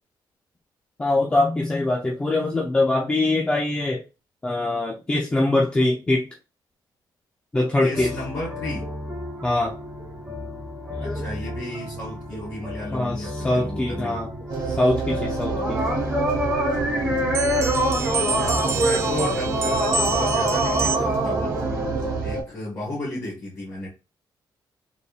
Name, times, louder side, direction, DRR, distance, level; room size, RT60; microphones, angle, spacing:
voice 1, 1.0-4.0 4.4-6.3 7.5-8.1 9.4-9.8 11.0-11.2 12.9-14.3 14.7-15.8 19.7-20.0, left 2 dB, 15° left, -2 dB, 0.5 m, -23 dB
voice 2, 7.8-8.9 10.9-14.2 16.9-17.4 18.1-21.6 22.2-23.9, left 1 dB, 35° left, -6 dB, 1.7 m, -34 dB
sound 1, 7.9-22.2, equal, 10° right, 1.0 m, -27 dB
sound 2, 14.5-22.4, right 4 dB, 60° right, 1.1 m, -28 dB
sound 3, 17.3-21.3, right 4 dB, 35° right, 0.4 m, -29 dB
3.9 x 3.4 x 2.3 m, 0.28 s
wide cardioid pair, 180°, 8 cm